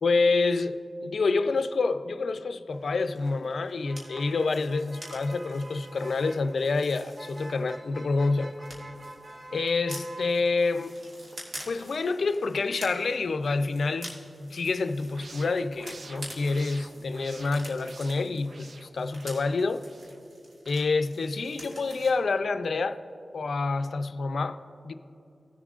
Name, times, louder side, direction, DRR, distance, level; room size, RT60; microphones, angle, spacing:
voice 1, 0.0-8.5 9.5-11.0 11.7-19.8 20.7-23.0 23.3-24.9, left 3 dB, 90° left, 0.4 m, -27 dB
Motor vehicle (road), 2.7-13.2, right 1 dB, 35° right, 1.0 m, -48 dB
sound 1, 3.0-8.0 8.2-22.1, right 1 dB, 85° right, 2.4 m, -47 dB
sound 2, 15.0-20.2, right 3 dB, 65° right, 0.5 m, -49 dB
18.0 x 7.3 x 2.4 m
wide cardioid pair, 70°, 0 cm